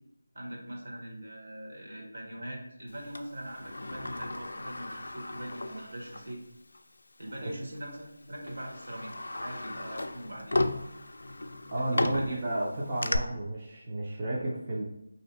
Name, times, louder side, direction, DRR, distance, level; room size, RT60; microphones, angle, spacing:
voice 1, 0.3-6.4 7.2-10.6 11.7-12.4, right 1 dB, 65° right, -2 dB, 1.1 m, -42 dB
Sliding door, 3.2-6.4 6.7-6.8 7.8-8.0 8.4-13.2, left 2 dB, 80° left, 0.3 m, -35 dB
voice 2, 11.7-14.8, right 1 dB, 25° right, -5 dB, 0.4 m, -32 dB
3.4 x 2.7 x 3.1 m, 0.82 s
figure-of-eight pair, 175°, 0 cm